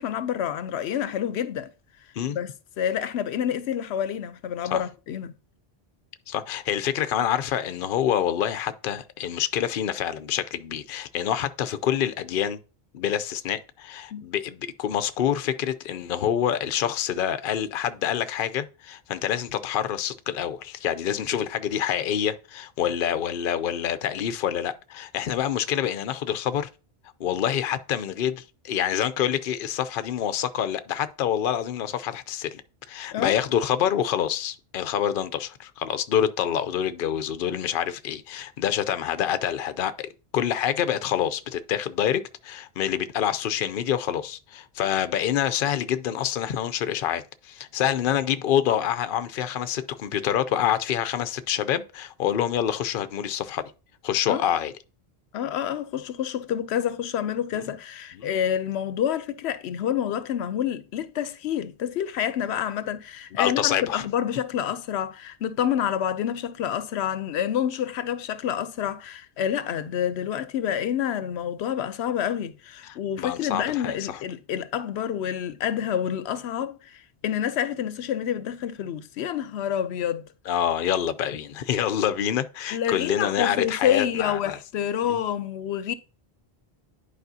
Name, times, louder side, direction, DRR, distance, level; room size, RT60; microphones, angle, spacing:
voice 1, 0.0-1.7 2.3-2.5 2.8-5.3 14.1-14.3 33.1-33.4 54.3-54.4 55.3-80.2 82.7-85.9, left 9 dB, 90° left, 0.9 m, -28 dB
voice 2, 6.3-12.6 12.9-26.7 27.2-32.6 32.9-40.1 40.3-53.7 54.0-54.7 57.5-57.6 58.1-58.3 63.3-64.0 72.8-74.2 80.5-84.6 85.0-85.2, left 10 dB, 60° left, 0.7 m, -27 dB
10.5 x 4.9 x 2.7 m
omnidirectional pair, 1.1 m